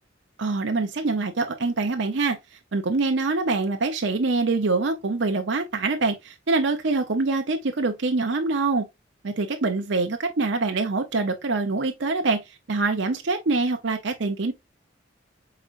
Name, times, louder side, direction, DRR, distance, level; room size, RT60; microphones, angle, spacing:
voice 1, 0.4-2.4 2.7-8.9 9.2-12.4 12.7-14.5, right 3 dB, 70° right, 0.7 m, -24 dB
4.9 x 4.2 x 2.5 m
head